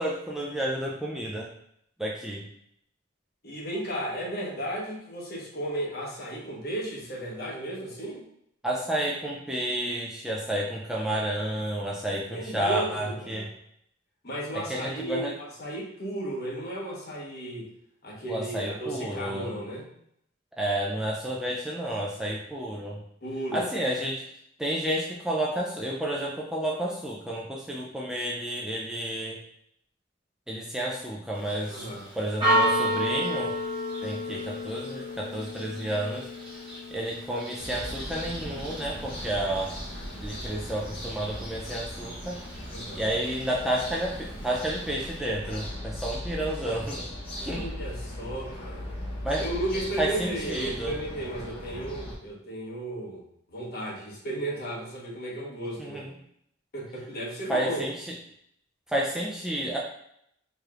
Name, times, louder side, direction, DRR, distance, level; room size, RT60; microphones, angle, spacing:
voice 1, 0.0-1.5 2.0-2.4 8.6-13.5 14.5-15.3 18.3-19.5 20.6-23.0 23.5-24.2 24.6-29.4 30.5-31.9 32.1-33.5 34.0-36.3 36.9-39.8 40.2-42.4 42.9-47.1 47.4-47.7 49.2-49.5 50.0-51.0 55.8-56.1 57.5-58.1 58.9-59.8, right 1 dB, 5° right, -4 dB, 0.4 m, -31 dB
voice 2, 3.4-8.2 12.3-13.4 14.2-17.7 18.0-19.9 23.2-23.9 31.7-32.1 42.7-43.1 47.4-48.9 49.4-56.1 56.7-57.8, right 1 dB, 50° left, -3 dB, 1.1 m, -34 dB
Church bell, 31.3-45.2, equal, 25° right, 1.0 m, -33 dB
sound 1, 37.6-52.2, equal, 25° left, 0.9 m, -38 dB
4.7 x 3.1 x 2.4 m, 0.73 s
head